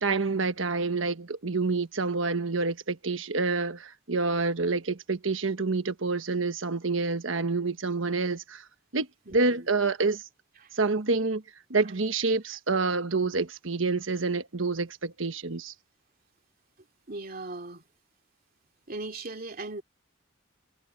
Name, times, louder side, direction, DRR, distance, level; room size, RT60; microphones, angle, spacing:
voice 1, 0.0-8.6 8.9-10.2 10.7-11.4 11.7-15.7, right 3 dB, 75° right, 1.3 m, -28 dB
voice 2, 9.3-9.7 10.6-10.7 12.5-12.6 17.1-17.8 18.9-19.8, right 2 dB, 50° right, 2.8 m, -38 dB
head